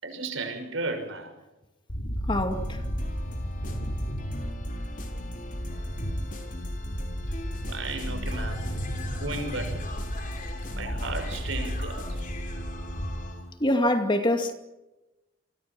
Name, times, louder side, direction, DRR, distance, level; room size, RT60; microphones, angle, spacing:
voice 1, 0.0-1.3 7.7-8.6 9.2-9.8 10.7-12.2, right 3 dB, 70° right, 6.0 m, -34 dB
sound 1, 1.9-13.1, equal, 60° left, 5.9 m, -33 dB
voice 2, 2.3-2.8 13.6-14.5, left 1 dB, 25° left, 2.3 m, -24 dB
sound 2, 2.5-13.6, left 2 dB, 40° left, 4.5 m, -42 dB
28.5 x 24.5 x 6.0 m
head